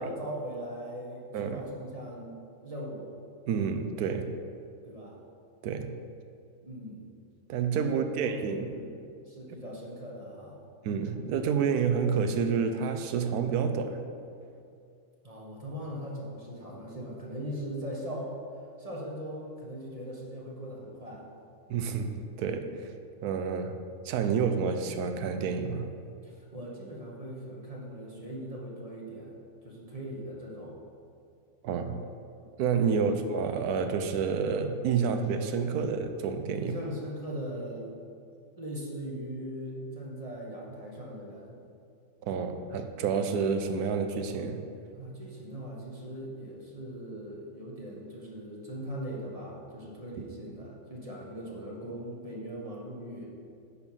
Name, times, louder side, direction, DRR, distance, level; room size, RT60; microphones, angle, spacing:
voice 1, 0.0-3.1 4.8-5.1 6.6-7.1 7.8-8.9 9.2-10.6 15.2-18.3 18.8-21.3 26.2-29.4 29.6-30.8 36.6-38.1 38.6-41.6 44.9-53.3, equal, 25° right, -3 dB, 1.2 m, -40 dB
voice 2, 3.5-4.3 5.6-6.0 7.5-8.7 10.8-14.0 21.7-22.8 23.2-23.7 24.0-25.9 31.6-32.0 32.6-36.8 42.2-44.6, right 6 dB, 90° right, 7 dB, 1.2 m, -29 dB
9.7 x 4.7 x 5.5 m, 2.4 s
omnidirectional pair, 1.6 m